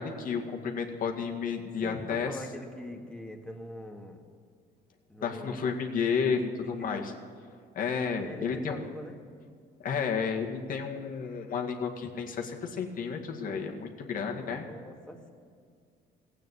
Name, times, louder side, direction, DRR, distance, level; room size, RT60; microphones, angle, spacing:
voice 1, 0.0-2.3 5.2-7.0 7.7-8.8 9.8-14.6, left 6 dB, 55° left, 2 dB, 2.0 m, -31 dB
voice 2, 1.8-4.2 5.1-5.7 6.5-7.1 8.1-9.2 14.1-15.3, left 1 dB, 5° left, 2 dB, 2.0 m, -43 dB
16.0 x 9.1 x 9.7 m, 2.2 s
cardioid pair, 110°, 17 cm